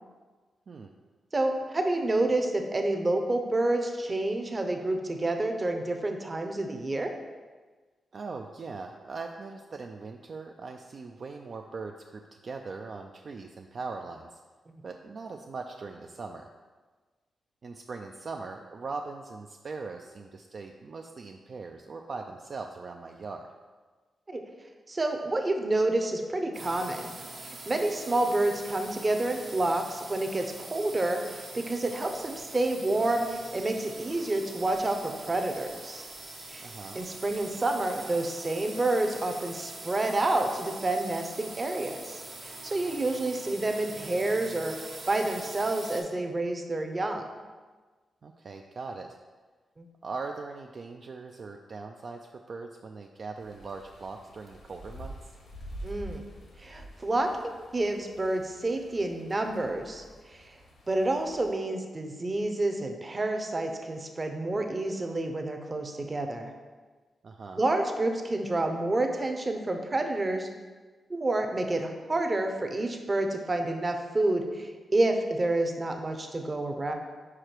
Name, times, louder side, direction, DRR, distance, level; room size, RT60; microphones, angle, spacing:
voice 1, 1.3-7.1 24.3-24.4 24.9-27.1 27.4-36.0 36.5-36.7 36.9-44.8 45.1-47.3 49.8-49.9 55.8-56.2 56.6-60.5 60.9-66.5 67.5-70.5 71.1-76.9, right 2 dB, 30° right, 5 dB, 0.7 m, -29 dB
voice 2, 8.1-14.4 14.8-16.5 17.6-23.5 36.6-37.0 48.2-49.2 50.0-55.3 67.2-67.6, right 4 dB, 55° right, 3 dB, 0.3 m, -40 dB
sound 1, 26.5-46.0, right 2 dB, 75° right, 1.4 m, -44 dB
sound 2, 53.4-61.5, right 1 dB, 85° left, 1.2 m, -47 dB
4.9 x 4.8 x 4.5 m, 1.4 s
cardioid pair, 85°, 0 cm